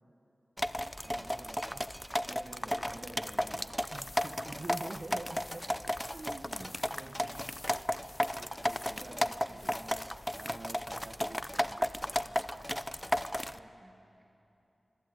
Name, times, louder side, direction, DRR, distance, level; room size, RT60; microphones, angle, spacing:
sound 1, 0.6-13.6, equal, 5° left, 0.6 m, -34 dB
voice 1, 1.0-1.9 3.9-5.6 6.1-7.9 8.4-9.7 10.4-11.9 12.2-12.7, right 2 dB, 50° right, 7 dB, 1.3 m, -48 dB
voice 2, 2.2-3.8 4.2-4.7 7.0-7.6 8.5-10.0 13.5-14.0, right 1 dB, 30° right, 1 dB, 2.5 m, -51 dB
sound 2, 3.8-11.5, left 2 dB, 40° left, 2.0 m, -55 dB
25.0 x 23.0 x 8.2 m, 2.9 s
wide cardioid pair, 70°, 0 cm